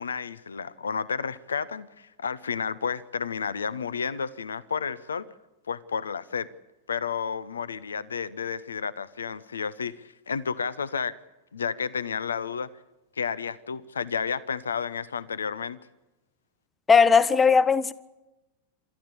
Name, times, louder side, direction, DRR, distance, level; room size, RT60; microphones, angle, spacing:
voice 1, 0.0-5.3 5.7-6.5 6.9-11.2 11.5-12.7 13.2-15.8, left 6 dB, 70° left, 0.7 m, -31 dB
voice 2, 16.9-17.9, left 5 dB, 15° left, 0.8 m, -18 dB
28.0 x 13.5 x 8.3 m
figure-of-eight pair, 90°, 0 cm